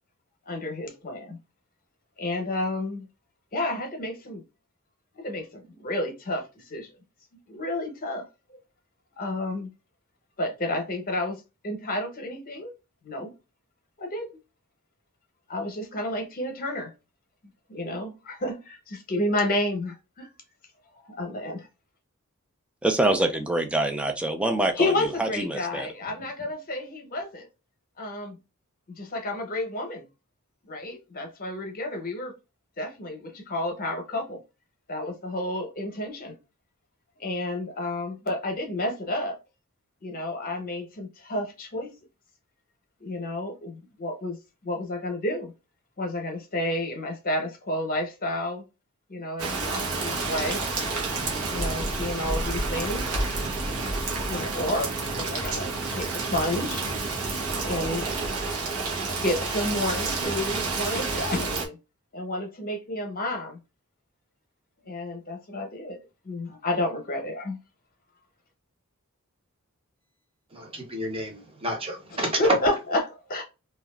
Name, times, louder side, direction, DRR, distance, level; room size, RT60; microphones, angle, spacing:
voice 1, 0.5-1.4 2.2-3.1 3.5-4.4 5.2-6.9 7.5-8.2 8.5-8.6 9.2-9.7 10.4-12.7 13.0-13.3 14.0-14.3 15.5-16.9 17.7-20.3 21.0-21.7 24.7-27.5 28.0-28.4 29.0-30.1 30.6-32.3 32.8-34.4 34.9-36.4 37.2-39.4 40.0-41.9 43.0-44.4 44.6-45.5 46.0-48.6 49.1-50.6 51.5-53.1 54.2-56.9 57.6-58.1 59.2-61.8 62.1-63.6 64.8-67.6 72.2-73.4, left 1 dB, 40° left, 0.8 m, -31 dB
voice 2, 22.8-24.9 25.2-25.9, right 2 dB, 5° right, 0.3 m, -25 dB
Rain, 49.4-61.7, right 3 dB, 80° right, 0.8 m, -29 dB
voice 3, 70.5-72.6, right 1 dB, 25° right, 0.7 m, -29 dB
2.8 x 2.3 x 2.2 m
head